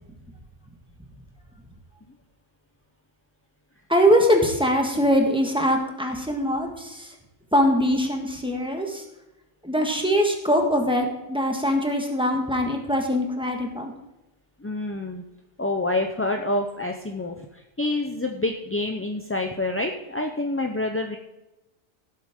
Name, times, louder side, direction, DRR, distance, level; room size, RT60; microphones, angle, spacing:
voice 1, 3.9-7.1 7.5-9.0 9.6-13.9, equal, 5° right, 2 dB, 1.6 m, -22 dB
voice 2, 14.6-15.2 15.6-21.2, left 2 dB, 15° left, 3 dB, 0.5 m, -27 dB
17.0 x 7.6 x 3.7 m, 0.98 s
omnidirectional pair, 1.2 m